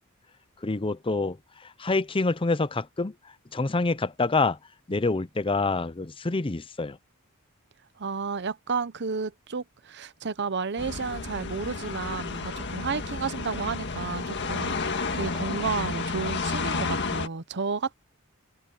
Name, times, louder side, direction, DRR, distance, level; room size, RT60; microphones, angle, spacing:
voice 1, 0.6-1.4 1.8-3.1 3.5-4.6 4.9-7.0, left 3 dB, 25° left, 0.7 m, -26 dB
voice 2, 8.0-17.9, right 5 dB, 55° right, 0.9 m, -32 dB
sound 1, 10.8-17.3, left 4 dB, 55° left, 1.8 m, -31 dB
head